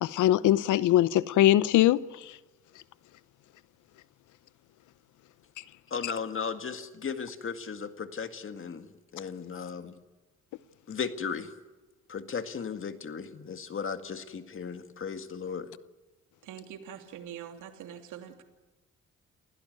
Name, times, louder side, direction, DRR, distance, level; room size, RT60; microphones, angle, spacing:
voice 1, 0.0-2.4 6.0-6.1, left 13 dB, 80° left, 0.8 m, -22 dB
voice 2, 5.9-8.9 9.1-10.0 10.9-11.5 12.1-15.7, left 6 dB, 45° left, 2.0 m, -36 dB
voice 3, 16.4-18.4, right 9 dB, 85° right, 2.8 m, -44 dB
28.5 x 16.5 x 9.3 m
cardioid pair, 90°, 30 cm